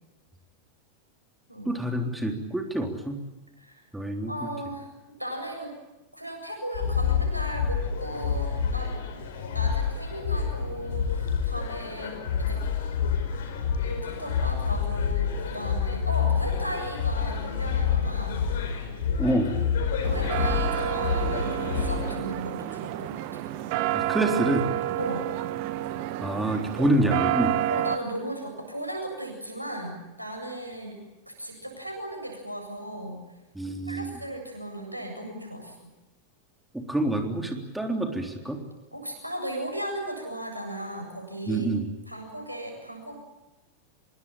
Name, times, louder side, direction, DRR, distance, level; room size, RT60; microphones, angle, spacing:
voice 1, 1.7-3.2 3.9-4.3 19.2-19.5 23.9-24.7 26.2-27.5 33.5-34.1 36.7-38.6 41.5-41.8, right 1 dB, 5° right, 4 dB, 3.6 m, -27 dB
voice 2, 4.3-4.9 5.2-5.7 6.1-8.9 9.5-12.6 13.8-18.5 20.0-23.4 25.0-25.3 27.7-31.0 31.3-33.2 33.9-35.9 38.9-41.7 42.1-43.1, right 1 dB, 90° right, 3 dB, 7.9 m, -36 dB
sound 1, 6.7-22.2, left 6 dB, 60° left, 4.8 m, -28 dB
sound 2, 20.0-28.0, right 13 dB, 45° right, 1.7 m, -29 dB
25.0 x 23.0 x 9.0 m, 1.0 s
figure-of-eight pair, 90°, 0 cm